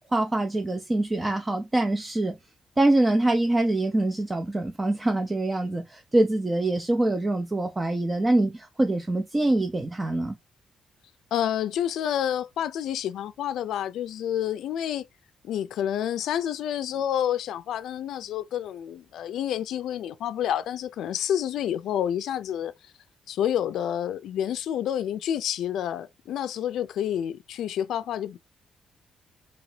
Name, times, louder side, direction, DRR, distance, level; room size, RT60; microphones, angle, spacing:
voice 1, 0.1-2.3 2.8-10.3, right 2 dB, 15° right, 0.4 m, -24 dB
voice 2, 11.3-15.0 15.4-22.7 23.3-28.4, left 10 dB, 85° left, 0.3 m, -29 dB
3.9 x 2.8 x 3.2 m
cardioid pair, 175°, 0 cm